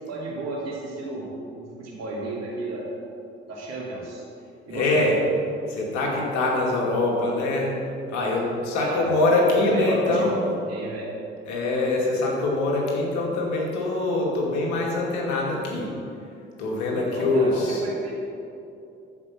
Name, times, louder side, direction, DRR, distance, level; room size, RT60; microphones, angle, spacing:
voice 1, 0.1-1.3 1.6-2.8 3.5-4.2 4.7-5.0 8.8-9.2 9.6-10.4 10.7-11.1 16.9-18.1, right 2 dB, 60° right, -4 dB, 2.7 m, -32 dB
voice 2, 4.7-5.2 5.7-7.7 8.1-10.5 11.5-15.9 16.6-17.8, left 2 dB, 70° left, -2 dB, 2.3 m, -24 dB
13.0 x 5.3 x 5.9 m, 2.7 s
hypercardioid pair, 55°, 30 cm